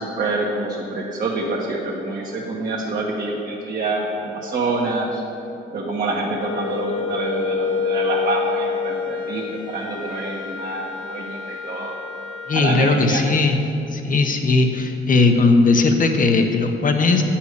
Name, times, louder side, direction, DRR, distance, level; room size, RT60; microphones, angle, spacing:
voice 1, 0.0-5.2 5.7-11.9 12.5-13.2, right 2 dB, 45° right, -5 dB, 1.5 m, -26 dB
Wind instrument woodwind instrument, 6.4-12.8, left 5 dB, 80° left, 0.9 m, -28 dB
voice 2, 12.5-13.6 13.9-17.2, left 3 dB, 45° left, 5 dB, 1.1 m, -18 dB
8.9 x 5.8 x 8.2 m, 2.9 s
cardioid pair, 90°, 20 cm